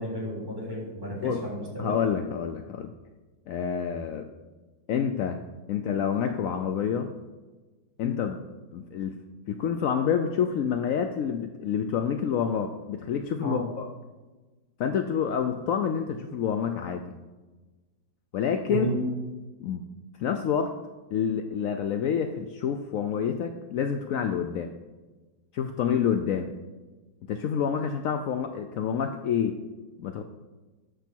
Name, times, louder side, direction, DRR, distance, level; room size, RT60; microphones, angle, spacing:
voice 1, 0.0-2.0 13.4-13.7 18.7-19.0, right 1 dB, 10° right, -4 dB, 3.3 m, -32 dB
voice 2, 1.8-2.9 3.5-4.3 4.9-7.1 8.0-8.4 8.7-9.2 9.5-13.9 14.8-17.2 18.3-18.9 19.6-19.9 20.2-20.7 21.1-24.7 25.5-26.5 27.3-29.6 30.0-30.2, left 7 dB, 75° left, 7 dB, 0.7 m, -28 dB
12.0 x 6.7 x 4.5 m, 1.2 s
omnidirectional pair, 2.0 m